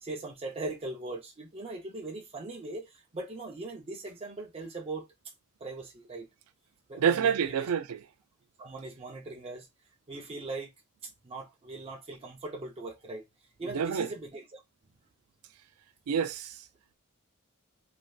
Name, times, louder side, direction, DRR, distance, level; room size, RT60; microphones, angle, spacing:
voice 1, 0.0-5.1 5.6-6.3 6.9-7.7 8.6-9.7 10.1-10.7 11.2-13.2 13.6-14.6, right 2 dB, 25° right, 0.5 m, -40 dB
voice 2, 7.0-8.0 13.7-14.1 16.1-16.6, right 7 dB, 80° right, 0.4 m, -27 dB
3.1 x 2.6 x 2.3 m
head